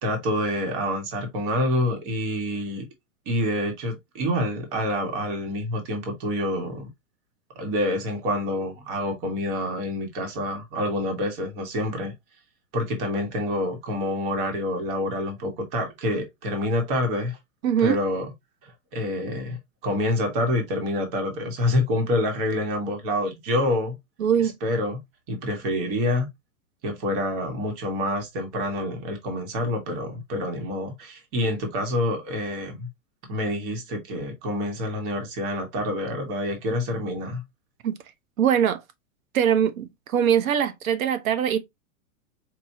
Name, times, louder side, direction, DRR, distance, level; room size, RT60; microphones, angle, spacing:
voice 1, 0.0-2.8 3.2-6.9 7.5-12.1 12.7-17.4 17.8-18.3 18.9-23.9 24.6-25.0 25.3-26.3 26.8-32.9 33.3-37.4, left 1 dB, 40° right, 1.5 m, -27 dB
voice 2, 17.6-18.0 24.2-24.5 37.8-37.9 38.4-38.8 39.3-41.6, right 9 dB, 75° right, 1.0 m, -22 dB
4.6 x 2.7 x 2.7 m
supercardioid pair, 155°, 42 cm